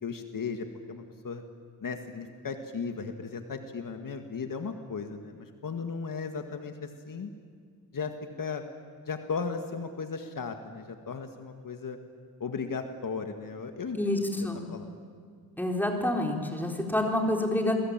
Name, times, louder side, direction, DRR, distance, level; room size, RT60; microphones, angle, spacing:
voice 1, 0.0-1.4 1.8-7.3 7.9-8.1 8.4-8.6 9.1-12.0 12.4-14.2 14.7-15.0, left 5 dB, 60° left, 6 dB, 2.0 m, -36 dB
voice 2, 13.9-14.6 15.6-17.7, left 1 dB, 5° left, 1 dB, 4.2 m, -28 dB
29.0 x 21.5 x 9.0 m, 2.1 s
wide cardioid pair, 105°, 38 cm